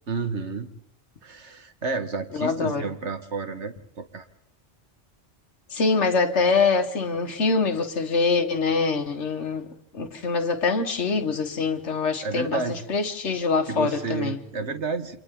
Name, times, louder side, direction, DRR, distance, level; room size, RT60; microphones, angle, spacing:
voice 1, 0.1-0.7 1.2-4.3 12.2-12.8 13.7-15.2, right 4 dB, 75° right, 2.0 m, -30 dB
voice 2, 2.3-2.9 5.7-9.7 9.9-12.6 12.9-14.4, left 4 dB, 75° left, 1.8 m, -24 dB
29.5 x 26.5 x 3.8 m
omnidirectional pair, 1.2 m